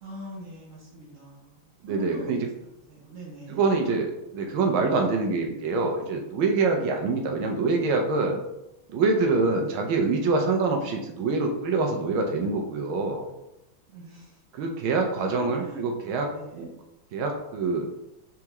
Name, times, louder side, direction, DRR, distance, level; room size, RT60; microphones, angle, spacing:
voice 1, 0.0-3.6 13.9-14.4 15.3-16.7, right 1 dB, 50° right, -4 dB, 1.1 m, -43 dB
voice 2, 1.8-2.4 3.5-4.1 4.3-8.4 8.9-13.3 14.5-16.7 17.1-17.9, right 3 dB, 80° right, 3 dB, 1.5 m, -25 dB
4.4 x 3.6 x 3.0 m, 0.90 s
omnidirectional pair, 2.2 m